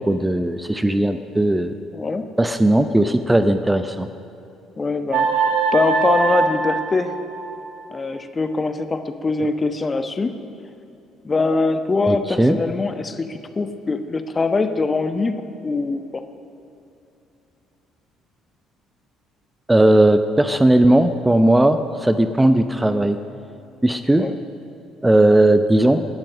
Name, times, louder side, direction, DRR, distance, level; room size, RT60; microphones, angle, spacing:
voice 1, 0.0-1.7 2.4-4.1 12.1-12.6 19.7-23.2 23.8-24.3 25.0-26.1, right 1 dB, 10° right, 10 dB, 0.7 m, -17 dB
voice 2, 1.9-2.3 4.8-7.2 7.9-10.4 11.2-15.4 15.6-16.2 24.2-24.4, left 3 dB, 25° left, 9 dB, 1.1 m, -23 dB
sound 1, 5.1-7.8, right 5 dB, 60° right, 1.7 m, -22 dB
18.5 x 12.0 x 6.3 m, 2.8 s
figure-of-eight pair, 50°, 0 cm